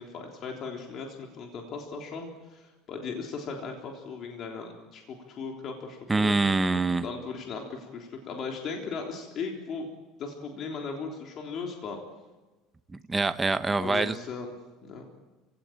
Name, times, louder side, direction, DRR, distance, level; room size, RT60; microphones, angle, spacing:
voice 1, 0.0-5.0 5.3-6.4 7.0-9.9 10.2-12.0 13.8-14.5 14.8-15.1, left 5 dB, 40° left, 1 dB, 3.6 m, -37 dB
voice 2, 6.1-7.1 12.9-14.2, right 3 dB, 10° right, 10 dB, 0.8 m, -25 dB
29.0 x 17.0 x 8.8 m, 1.2 s
cardioid pair, 145°, 0 cm